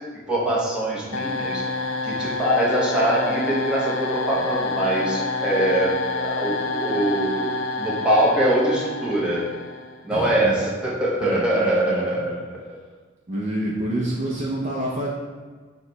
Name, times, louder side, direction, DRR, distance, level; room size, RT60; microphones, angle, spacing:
voice 1, 0.3-1.6 2.0-7.5 7.8-9.4 10.0-12.6, right 1 dB, 5° right, -7 dB, 0.8 m, -23 dB
sound 1, 1.1-10.0, left 3 dB, 80° left, 0.4 m, -28 dB
voice 2, 10.1-10.6 11.2-12.4 13.3-15.1, right 1 dB, 40° right, -5 dB, 0.5 m, -27 dB
4.6 x 2.2 x 3.9 m, 1.5 s
head